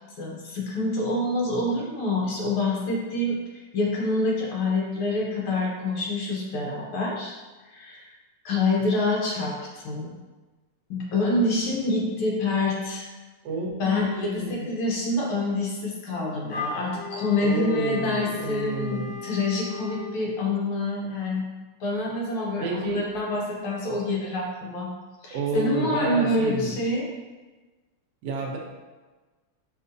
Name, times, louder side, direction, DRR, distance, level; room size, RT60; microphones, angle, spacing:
voice 1, 0.2-7.3 7.7-8.1 8.4-10.2 10.9-13.1 13.8-21.4 21.8-24.9 25.2-27.0, left 2 dB, 75° left, -2 dB, 1.6 m, -27 dB
voice 2, 13.4-14.7 17.4-19.2 22.6-23.0 25.3-26.7 28.2-28.6, right 3 dB, 65° right, -1 dB, 1.0 m, -30 dB
Wind instrument woodwind instrument, 16.5-20.1, left 6 dB, 40° left, 1.5 m, -37 dB
5.5 x 2.8 x 2.6 m, 1.3 s
omnidirectional pair, 2.4 m